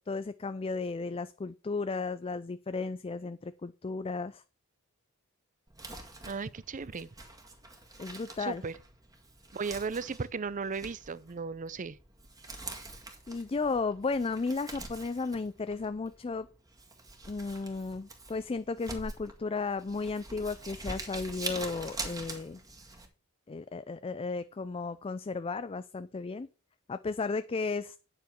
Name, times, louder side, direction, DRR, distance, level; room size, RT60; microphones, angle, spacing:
voice 1, 0.1-4.4 8.0-8.6 13.3-16.5 17.3-22.6 23.5-26.5 26.9-28.0, left 4 dB, 25° left, 0.4 m, -34 dB
Crumpling crinkling, 5.7-23.1, right 2 dB, 15° right, 1.9 m, -45 dB
voice 2, 6.3-7.1 8.4-8.7 9.5-12.0, right 5 dB, 35° right, 0.5 m, -36 dB
9.2 x 7.6 x 4.6 m
head